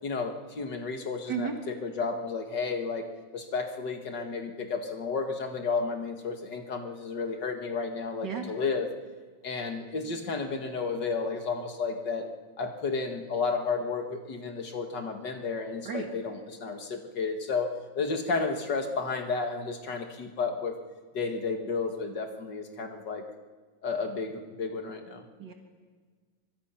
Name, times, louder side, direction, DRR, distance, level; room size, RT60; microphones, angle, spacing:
voice 1, 0.0-3.1 3.3-8.9 9.4-12.3 12.6-17.7 18.0-20.8 21.1-23.2 23.8-25.2, left 4 dB, 70° left, 5 dB, 2.4 m, -32 dB
voice 2, 1.3-1.6 8.2-8.4 15.9-16.1 25.4-25.5, right 6 dB, 70° right, 3 dB, 2.5 m, -33 dB
23.5 x 23.0 x 5.8 m, 1.5 s
omnidirectional pair, 2.0 m